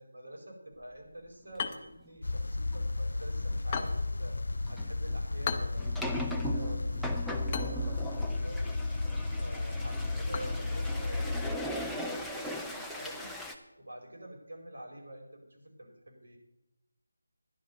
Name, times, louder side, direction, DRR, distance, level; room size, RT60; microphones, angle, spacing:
voice 1, 0.0-4.4 4.7-8.7 9.3-13.3 13.8-16.4, right 1 dB, 75° right, 0 dB, 5.0 m, -47 dB
sound 1, 1.5-11.6, left 6 dB, 25° left, 0.9 m, -43 dB
sound 2, 2.2-11.6, left 2 dB, 70° left, 0.3 m, -33 dB
sound 3, 2.7-2.9 3.3-3.6 4.7-13.5, equal, ahead, 0.7 m, -39 dB
11.0 x 11.0 x 5.4 m, 0.90 s
figure-of-eight pair, 160°, 0 cm